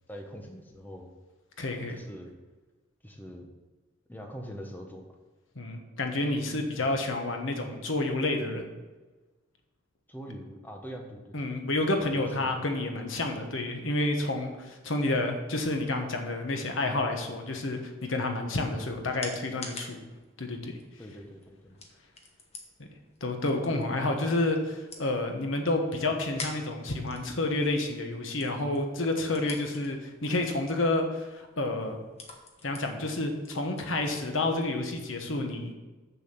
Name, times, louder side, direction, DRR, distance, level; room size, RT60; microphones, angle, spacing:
voice 1, 0.1-1.1 1.8-2.4 3.0-3.5 4.1-5.1 6.8-6.9 10.1-11.3 12.2-12.5 21.0-21.8, equal, 10° left, 2 dB, 1.0 m, -43 dB
voice 2, 1.6-2.0 5.5-8.7 11.3-20.0 20.4-20.7 23.2-32.0 32.6-35.7, left 2 dB, 75° left, 4 dB, 1.3 m, -29 dB
sound 1, 18.4-34.8, left 3 dB, 30° left, 1.2 m, -49 dB
7.3 x 6.9 x 5.9 m, 1.2 s
head